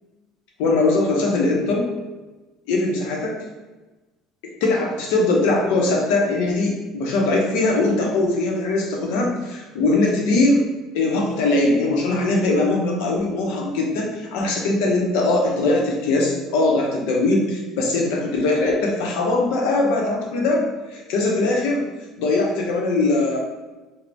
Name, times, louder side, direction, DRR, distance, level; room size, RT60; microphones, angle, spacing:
voice 1, 0.6-1.8 2.7-3.4 4.4-10.6 10.9-21.8 22.2-23.4, left 2 dB, 85° left, 0 dB, 0.6 m, -21 dB
2.5 x 2.0 x 3.3 m, 1.2 s
cardioid pair, 130°, 0 cm